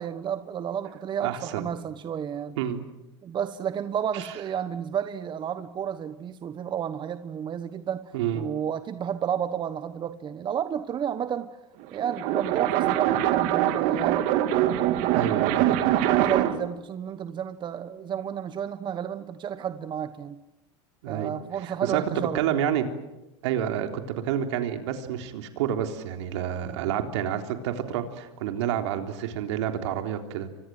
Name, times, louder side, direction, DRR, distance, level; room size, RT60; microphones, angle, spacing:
voice 1, 0.0-2.6 3.2-11.6 11.9-14.2 14.6-15.5 16.2-20.4 21.1-22.4, right 8 dB, 30° right, 12 dB, 1.2 m, -32 dB
voice 2, 1.2-1.6 2.6-2.8 4.1-4.3 8.1-8.5 15.1-15.8 21.0-21.3 21.6-22.9 23.4-30.5, right 10 dB, 70° right, 5 dB, 3.7 m, -29 dB
sound 1, 11.8-16.7, right 12 dB, 55° right, 2.4 m, -23 dB
29.5 x 24.5 x 7.8 m, 0.98 s
hypercardioid pair, 110°, 15 cm